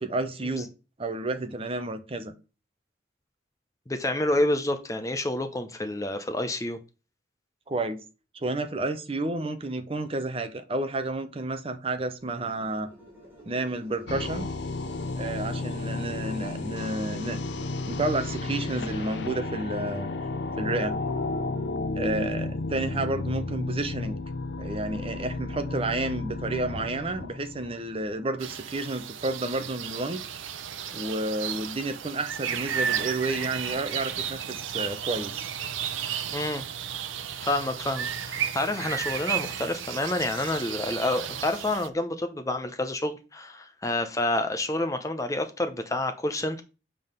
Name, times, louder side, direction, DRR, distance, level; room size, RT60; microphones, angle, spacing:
voice 1, 0.0-0.7 1.0-2.3 7.7-8.0 8.4-12.9 13.5-14.5 15.2-17.4 17.9-20.1 20.6-21.0 22.0-24.2 24.6-30.2 30.9-35.5, right 2 dB, 30° right, 0.7 m, -31 dB
voice 2, 3.9-6.8 36.3-36.6 37.4-46.6, left 1 dB, 15° left, 0.7 m, -28 dB
sound 1, 12.1-21.7, equal, 10° right, 3.1 m, -48 dB
sound 2, 14.1-28.2, left 2 dB, 60° left, 0.6 m, -33 dB
sound 3, 28.4-41.9, right 8 dB, 80° right, 0.7 m, -33 dB
7.7 x 3.7 x 6.5 m
head